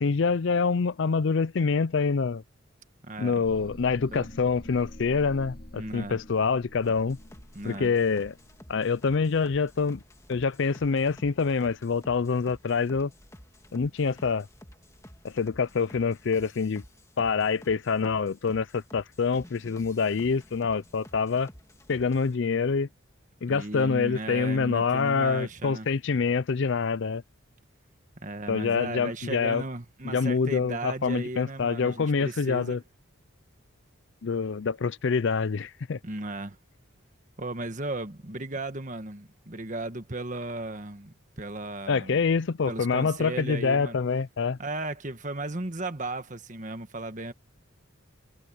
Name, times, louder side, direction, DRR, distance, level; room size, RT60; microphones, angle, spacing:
voice 1, 0.0-2.4 3.2-7.2 7.6-8.3 8.7-10.0 10.3-13.1 13.7-14.5 15.2-16.8 17.2-21.5 21.9-22.9 23.4-27.2 28.5-29.6 30.0-32.8 34.2-36.0 41.9-44.6, left 5 dB, 55° left, 0.4 m, -26 dB
voice 2, 3.0-3.4 4.1-4.3 5.7-6.2 7.5-7.9 23.5-25.9 28.2-32.8 36.0-36.6 37.4-42.2 42.7-44.0 44.6-47.3, right 2 dB, 35° right, 1.5 m, -36 dB
sound 1, 3.4-9.4, left 1 dB, 40° left, 2.6 m, -47 dB
sound 2, 6.8-22.4, left 1 dB, 15° left, 2.3 m, -52 dB
head